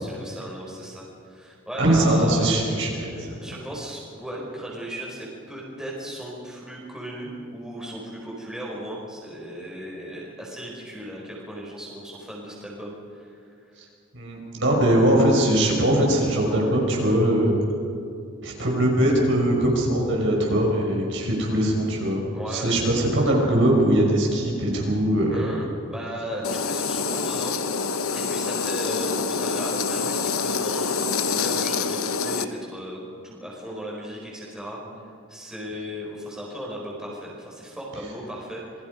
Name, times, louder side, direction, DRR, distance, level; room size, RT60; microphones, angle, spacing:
voice 1, 0.0-2.5 3.4-13.4 22.3-22.7 25.3-27.6 28.1-31.0 31.3-33.0 33.2-34.8 35.3-38.6, equal, 5° right, -4 dB, 5.0 m, -36 dB
voice 2, 1.8-3.4 14.1-17.5 18.4-22.2 22.5-25.5, right 1 dB, 60° right, -1 dB, 5.6 m, -21 dB
sound 1, 26.4-32.5, left 5 dB, 90° left, 1.1 m, -26 dB
27.5 x 22.0 x 5.4 m, 2.5 s
head